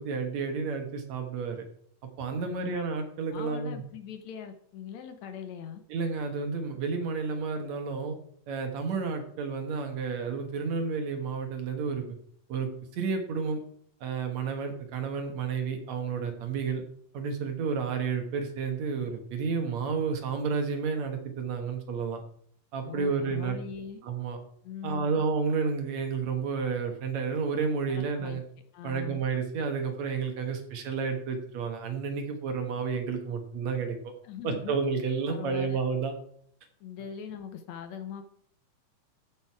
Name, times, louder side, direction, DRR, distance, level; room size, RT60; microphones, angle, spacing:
voice 1, 0.0-1.6 2.2-3.8 5.9-8.2 8.5-12.2 12.5-13.6 14.0-16.8 17.1-22.2 22.7-23.6 24.0-24.4 24.8-28.4 28.8-34.1 34.4-36.1, right 5 dB, 65° right, 4 dB, 2.5 m, -31 dB
voice 2, 2.4-2.8 3.2-5.8 22.8-24.0 24.6-25.2 27.9-28.4 28.7-29.2 34.2-34.7 35.3-35.8 36.8-38.2, left 8 dB, 70° left, 8 dB, 2.0 m, -41 dB
14.5 x 6.2 x 4.7 m, 0.63 s
omnidirectional pair, 3.5 m